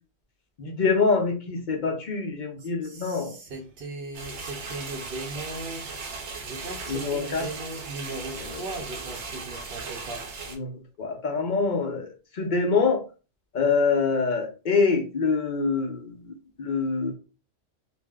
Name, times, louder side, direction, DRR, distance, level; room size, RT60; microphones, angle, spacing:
voice 1, 0.6-3.3 6.9-7.5 8.4-8.6 10.5-13.0 13.5-17.1, left 4 dB, 50° left, 0.7 m, -25 dB
voice 2, 2.6-10.3, right 2 dB, 65° right, 0.7 m, -38 dB
sound 1, 4.1-10.6, right 4 dB, 90° right, 1.0 m, -37 dB
2.5 x 2.0 x 3.4 m
omnidirectional pair, 1.1 m